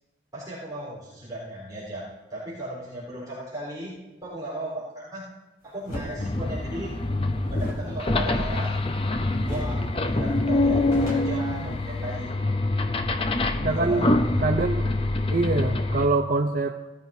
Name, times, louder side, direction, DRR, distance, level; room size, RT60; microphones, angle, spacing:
voice 1, 0.3-3.9 4.2-5.2 5.6-7.0 7.5-8.7 9.5-12.4 13.7-14.6, right 1 dB, 20° right, -7 dB, 4.0 m, -36 dB
sound 1, 5.8-6.1 7.5-9.1 9.4-9.8 10.1-10.2 10.6-12.1, equal, 45° left, 3.2 m, -38 dB
sound 2, 6.2-16.1, left 2 dB, 30° left, 0.6 m, -25 dB
voice 2, 13.6-14.9 15.3-16.9, right 3 dB, 45° right, 5 dB, 0.6 m, -25 dB
17.5 x 13.5 x 2.7 m, 1.1 s
head